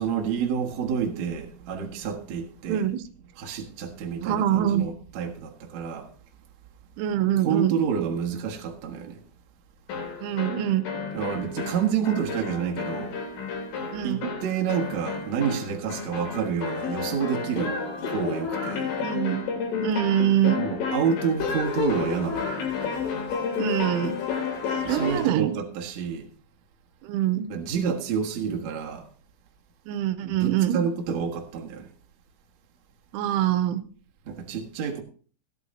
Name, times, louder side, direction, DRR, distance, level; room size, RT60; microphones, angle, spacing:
voice 1, 0.0-2.9 3.4-6.1 7.4-9.2 11.1-13.2 14.0-17.7 18.1-18.9 20.6-22.5 24.8-26.3 27.5-29.1 30.2-31.9 34.3-35.0, right 7 dB, 60° right, 1.9 m, -29 dB
voice 2, 2.7-3.0 4.2-4.9 7.0-7.8 10.2-10.9 13.9-14.3 19.0-19.5 19.8-20.6 23.6-24.2 24.7-25.5 27.0-27.5 29.9-30.8 33.1-33.8, right 11 dB, 85° right, 3.1 m, -24 dB
sound 1, 9.9-25.4, left 5 dB, 80° left, 5.5 m, -31 dB
17.0 x 11.0 x 2.7 m
omnidirectional pair, 5.6 m